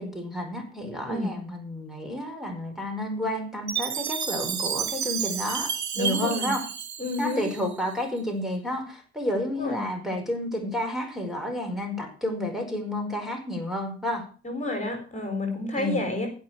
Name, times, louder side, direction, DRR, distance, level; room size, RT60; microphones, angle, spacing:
voice 1, 0.0-6.6 7.2-14.2 15.8-16.0, left 1 dB, ahead, 0 dB, 5.0 m, -31 dB
voice 2, 1.1-1.4 6.0-6.5 7.0-7.5 9.6-9.8 14.4-16.3, left 2 dB, 25° left, 4 dB, 4.6 m, -30 dB
Chime, 3.7-7.9, right 8 dB, 65° right, 2.1 m, -31 dB
15.5 x 6.0 x 7.9 m, 0.39 s
cardioid pair, 90°, 30 cm